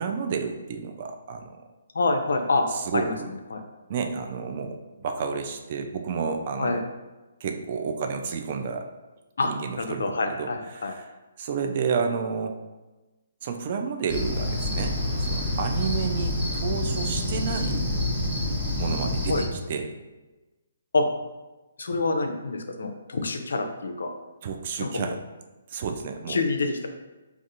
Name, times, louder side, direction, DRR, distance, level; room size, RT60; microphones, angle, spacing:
voice 1, 0.0-1.6 2.7-3.3 3.9-6.8 7.4-8.9 9.4-11.1 11.4-12.5 13.4-17.8 18.8-19.9 24.4-25.2 25.7-26.4, right 5 dB, 45° right, 4 dB, 0.3 m, -31 dB
voice 2, 1.9-2.6 2.9-3.6 6.6-6.8 9.4-9.5 9.8-11.0 19.3-19.5 20.9-21.1 21.8-24.1 24.8-25.2 26.3-26.9, left 3 dB, 70° left, 5 dB, 0.4 m, -26 dB
Cricket, 14.1-19.5, left 1 dB, 25° right, 1.2 m, -27 dB
3.5 x 2.4 x 2.6 m, 1.1 s
figure-of-eight pair, 135°, 0 cm